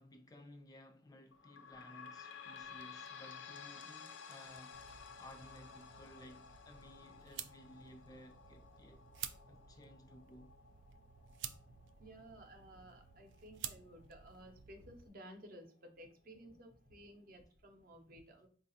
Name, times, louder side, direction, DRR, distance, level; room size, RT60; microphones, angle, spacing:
voice 1, 0.0-9.1 9.5-10.5, left 1 dB, 20° left, 0.3 m, -57 dB
sound 1, 1.3-14.5 15.0-15.1 15.4-15.5 16.3-16.4, left 6 dB, 85° left, 0.5 m, -55 dB
sound 2, 4.7-15.1, right 9 dB, 85° right, 0.3 m, -52 dB
voice 2, 12.0-18.5, right 1 dB, 55° right, 0.6 m, -56 dB
3.8 x 2.4 x 2.7 m
head